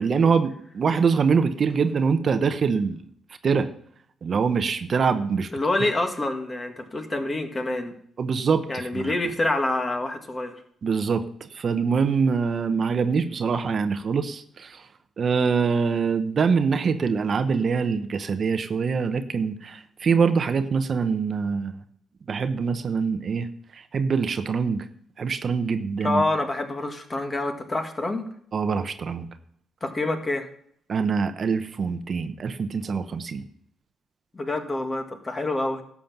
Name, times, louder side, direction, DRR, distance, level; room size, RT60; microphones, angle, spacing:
voice 1, 0.0-3.0 3.4-3.7 4.2-5.5 8.2-9.1 10.8-11.3 11.5-14.8 15.2-21.8 22.3-23.5 23.7-24.8 25.2-26.2 28.5-29.3 30.9-33.4, right 5 dB, 45° right, 10 dB, 0.8 m, -24 dB
voice 2, 5.5-7.9 8.7-10.6 26.0-28.2 29.8-30.5 34.3-35.8, left 2 dB, 25° left, 5 dB, 1.7 m, -27 dB
12.0 x 7.2 x 6.0 m, 0.65 s
cardioid pair, 90°, 0 cm